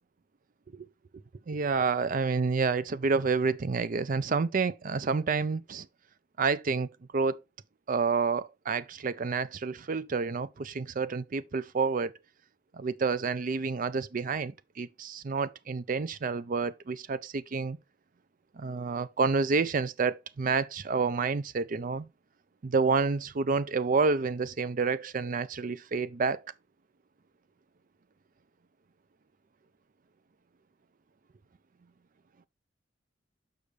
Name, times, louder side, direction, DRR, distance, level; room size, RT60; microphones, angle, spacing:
voice 1, 1.5-5.8 6.4-6.9 7.1-7.4 7.9-12.1 12.8-17.8 18.6-22.1 22.6-26.4, right 4 dB, 45° right, 0.5 m, -29 dB
6.7 x 6.3 x 3.2 m
head